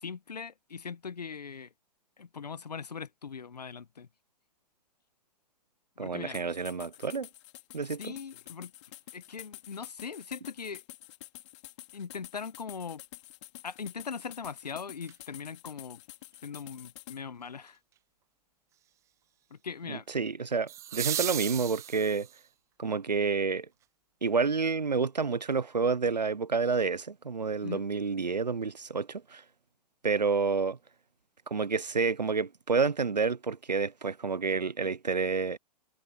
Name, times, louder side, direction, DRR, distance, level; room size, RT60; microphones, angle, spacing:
voice 1, 0.0-1.7 2.2-4.1 6.0-6.4 8.0-8.7 9.1-10.8 11.9-13.0 13.6-16.0 16.4-17.8 19.5-20.1 27.6-27.8, left 6 dB, 70° left, 1.5 m, -40 dB
voice 2, 6.0-7.3 7.7-8.1 19.9-22.3 22.8-23.7 24.2-29.4 30.0-30.8 31.5-35.6, right 5 dB, 80° right, 0.9 m, -29 dB
sound 1, 6.3-17.2, left 16 dB, 45° left, 3.1 m, -49 dB
sound 2, 15.0-15.1 20.7-22.5 24.7-24.8, right 12 dB, 15° right, 0.5 m, -35 dB
figure-of-eight pair, 115°, 21 cm